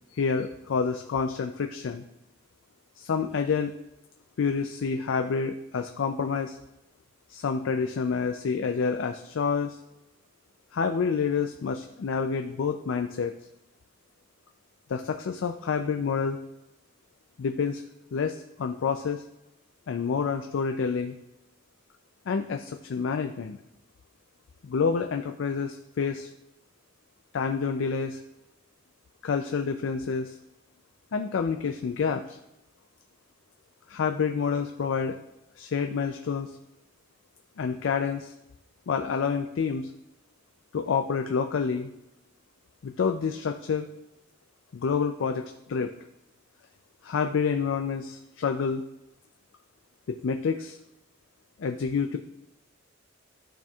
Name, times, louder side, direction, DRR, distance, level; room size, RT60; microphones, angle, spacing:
voice 1, 0.1-2.0 3.0-3.7 4.4-6.6 7.3-9.8 10.7-13.3 14.9-16.4 17.4-17.8 18.1-19.2 19.9-21.2 22.3-23.6 24.6-26.3 27.3-28.2 29.2-30.4 31.1-32.4 33.9-35.2 35.6-36.5 37.6-38.3 38.9-39.9 40.7-41.9 42.8-43.9 44.7-45.9 47.0-48.8 50.2-50.8 51.6-52.2, left 5 dB, 90° left, 6 dB, 0.4 m, -28 dB
12.5 x 4.3 x 2.3 m, 0.88 s
head